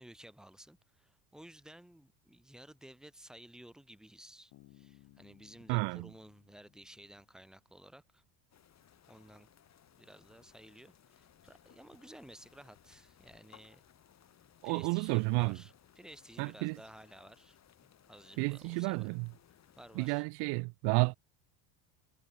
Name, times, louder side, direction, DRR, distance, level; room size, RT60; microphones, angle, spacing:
voice 1, 0.0-8.2 9.1-9.5 10.0-13.8 14.6-19.1 19.8-20.2, right 1 dB, ahead, 0.5 m, -55 dB
Bass guitar, 4.5-8.0, left 17 dB, 60° left, 4.5 m, -63 dB
voice 2, 5.7-6.1 14.6-15.6 16.4-16.8 18.4-19.3 19.9-21.2, right 31 dB, 70° right, 0.6 m, -31 dB
sound 1, 8.5-20.1, left 10 dB, 40° left, 4.5 m, -63 dB
cardioid pair, 135°, 43 cm